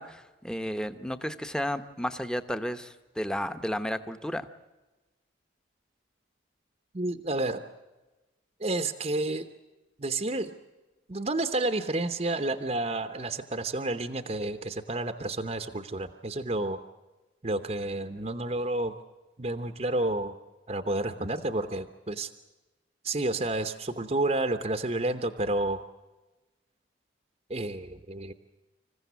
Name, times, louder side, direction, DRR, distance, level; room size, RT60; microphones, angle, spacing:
voice 1, 0.0-4.5, equal, 5° left, 9 dB, 0.9 m, -33 dB
voice 2, 6.9-7.6 8.6-9.5 10.0-10.5 11.1-16.8 17.4-18.9 19.4-20.4 20.7-22.3 23.0-25.8 27.5-28.3, right 2 dB, 35° right, 8 dB, 0.8 m, -30 dB
26.5 x 15.5 x 8.3 m, 1.1 s
head